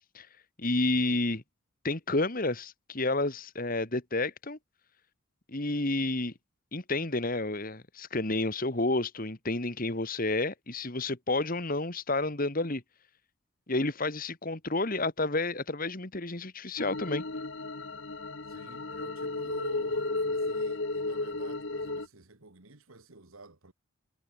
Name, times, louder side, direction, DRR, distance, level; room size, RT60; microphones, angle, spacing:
voice 1, 0.6-1.4 1.8-4.6 5.5-6.3 6.7-12.8 13.7-17.2, left 2 dB, 40° left, 1.9 m, -30 dB
sound 1, 16.8-22.1, left 2 dB, 60° left, 1.4 m, -33 dB
voice 2, 18.5-23.7, right 2 dB, 80° right, 2.2 m, -51 dB
head